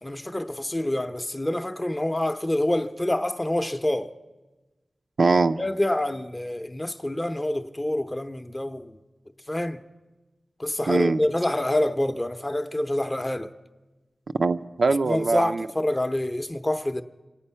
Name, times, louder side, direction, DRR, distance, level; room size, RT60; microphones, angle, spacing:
voice 1, 0.0-4.1 5.6-9.0 9.5-9.8 10.6-13.5 15.0-17.0, left 1 dB, 20° left, 0.6 m, -27 dB
voice 2, 5.2-5.6 10.9-11.2 14.4-15.7, right 3 dB, 65° right, 0.5 m, -22 dB
26.5 x 9.0 x 5.6 m
wide cardioid pair, 95°, 0 cm